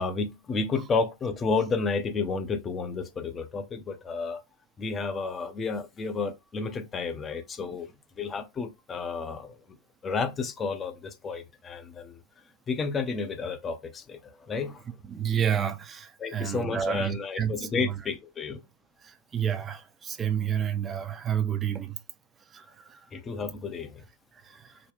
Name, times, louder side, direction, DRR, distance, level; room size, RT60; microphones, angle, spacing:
voice 1, 0.0-4.4 4.8-7.9 8.2-9.6 10.0-12.2 12.7-14.8 16.2-18.6 23.1-24.0, left 4 dB, 20° left, 0.6 m, -31 dB
voice 2, 15.0-17.9 19.0-22.0 22.5-23.0 24.3-24.8, right 9 dB, 20° right, 0.5 m, -30 dB
3.9 x 2.1 x 3.3 m
figure-of-eight pair, 90°, 0 cm